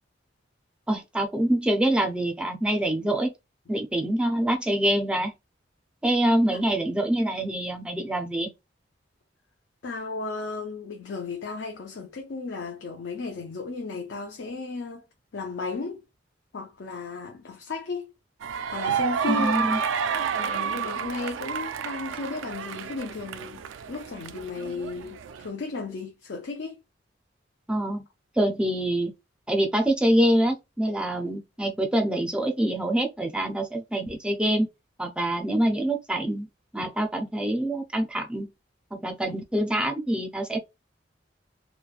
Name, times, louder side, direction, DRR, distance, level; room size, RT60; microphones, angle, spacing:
voice 1, 0.9-3.3 3.7-5.3 6.0-8.5 19.3-19.8 27.7-28.1 28.4-29.1 29.5-34.7 35.0-36.5 36.7-38.5 38.9-40.6, right 1 dB, 5° right, 0.4 m, -25 dB
voice 2, 9.8-15.0 15.3-16.0 16.5-18.1 18.7-19.5 20.3-23.6 23.9-26.8, left 3 dB, 65° left, 0.5 m, -34 dB
sound 1, 18.4-25.5, right 6 dB, 85° right, 0.3 m, -30 dB
3.1 x 2.1 x 2.4 m
head